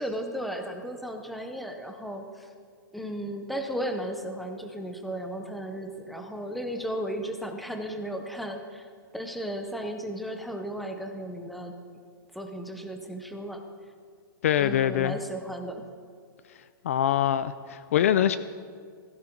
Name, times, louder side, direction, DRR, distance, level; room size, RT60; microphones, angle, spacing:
voice 1, 0.0-2.5 2.9-8.9 9.1-11.7 12.3-13.6 14.6-15.8, right 1 dB, ahead, 5 dB, 0.6 m, -35 dB
voice 2, 14.4-15.2 16.8-18.4, left 10 dB, 35° left, 13 dB, 0.4 m, -24 dB
16.5 x 15.0 x 4.5 m, 2.1 s
hypercardioid pair, 175°, 12 cm